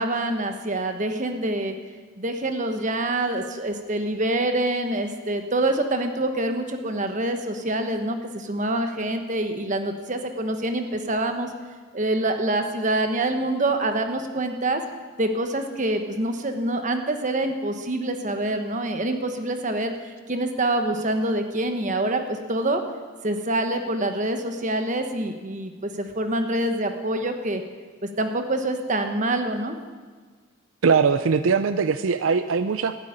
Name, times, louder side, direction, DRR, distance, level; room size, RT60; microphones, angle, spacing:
voice 1, 0.0-1.7 2.2-11.5 11.9-14.8 15.2-22.8 23.2-27.6 28.0-29.8, right 1 dB, 40° right, 6 dB, 1.2 m, -26 dB
voice 2, 30.8-32.9, right 5 dB, 75° right, 11 dB, 0.5 m, -21 dB
12.5 x 8.8 x 9.9 m, 1.4 s
head